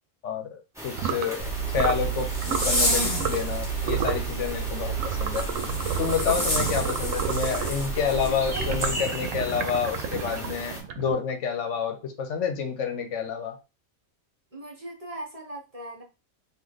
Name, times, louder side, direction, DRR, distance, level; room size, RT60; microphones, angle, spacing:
voice 1, 0.2-5.4 6.0-13.6, left 7 dB, 70° left, 5 dB, 1.0 m, -29 dB
sound 1, 0.7-10.8, equal, ahead, 1.4 m, -38 dB
sound 2, 0.9-1.3 1.7-2.1 2.4-2.7 3.2-3.5 3.8-4.3 5.0-7.8 8.5-11.3, right 8 dB, 90° right, 1.0 m, -31 dB
Zipper (clothing), 1.4-8.9, right 2 dB, 35° left, 1.6 m, -29 dB
voice 2, 8.1-8.6 14.5-16.0, right 1 dB, 30° right, -3 dB, 0.9 m, -39 dB
3.2 x 2.6 x 3.8 m, 0.29 s
omnidirectional pair, 1.3 m